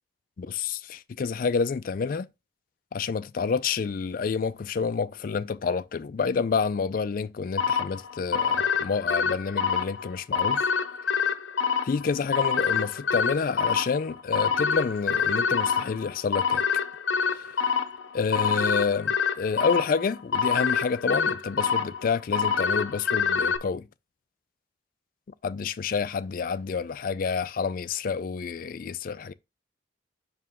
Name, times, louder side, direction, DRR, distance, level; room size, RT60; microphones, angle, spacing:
voice 1, 0.4-2.3 2.9-10.6 11.8-16.6 17.3-17.5 18.1-23.9 25.4-29.3, left 5 dB, 50° left, 0.3 m, -28 dB
sound 1, 7.6-23.6, left 6 dB, 85° left, 0.7 m, -26 dB
5.9 x 4.8 x 3.6 m
head